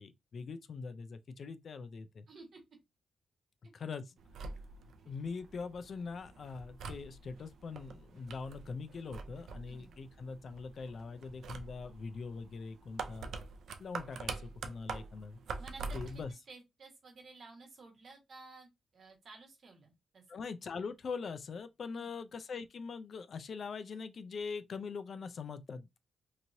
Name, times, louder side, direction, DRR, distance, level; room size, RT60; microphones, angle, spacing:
voice 1, 0.0-2.3 3.7-4.2 5.1-13.3 13.8-15.4 15.9-16.3 20.3-25.9, left 5 dB, 50° left, 0.3 m, -42 dB
voice 2, 2.3-2.6 9.7-9.9 15.6-18.7 18.9-20.4 21.9-22.1, right 3 dB, 55° right, 1.3 m, -54 dB
sound 1, 4.2-16.3, right 4 dB, 80° right, 0.4 m, -46 dB
3.0 x 2.8 x 2.6 m
wide cardioid pair, 140°, 0 cm